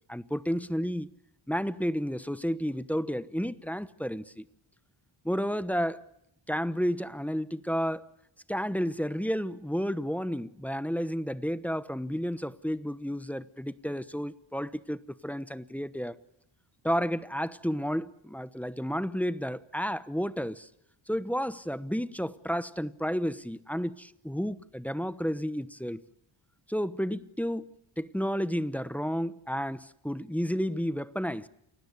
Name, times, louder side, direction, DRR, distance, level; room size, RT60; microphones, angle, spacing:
voice 1, 0.1-1.1 1.5-4.4 5.2-6.0 6.5-8.0 8.5-16.2 16.8-20.7 21.1-26.0 26.7-31.5, equal, 5° left, 1.0 m, -31 dB
29.0 x 17.5 x 9.8 m
cardioid pair, 80°, 48 cm